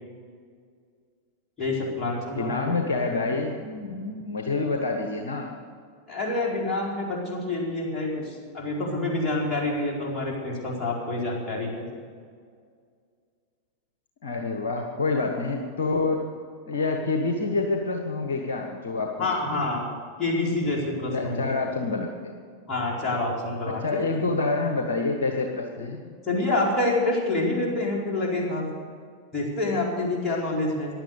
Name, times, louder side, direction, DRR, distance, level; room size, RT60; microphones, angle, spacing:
voice 1, 1.6-2.7 6.1-11.9 19.2-21.5 22.7-23.8 26.2-28.6 29.3-30.9, left 2 dB, 25° left, -3 dB, 4.4 m, -27 dB
voice 2, 2.3-5.5 14.2-16.3 16.6-19.6 21.1-22.3 23.6-26.0, left 3 dB, 60° left, 4 dB, 1.3 m, -27 dB
15.5 x 11.0 x 6.7 m, 2.1 s
figure-of-eight pair, 90°, 0 cm